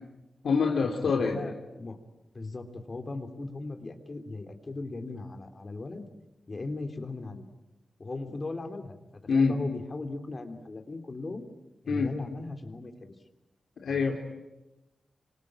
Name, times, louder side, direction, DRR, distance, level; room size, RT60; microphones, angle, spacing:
voice 1, 0.4-1.4 9.3-9.5 11.9-12.1 13.8-14.2, left 5 dB, 90° left, 3 dB, 2.9 m, -25 dB
voice 2, 1.2-2.0 2.3-6.1 6.5-7.5 8.0-9.0 9.3-11.5 11.8-13.1 13.9-14.2, left 2 dB, 35° left, 7 dB, 3.2 m, -38 dB
26.0 x 25.5 x 8.8 m, 0.97 s
wide cardioid pair, 110°, 0 cm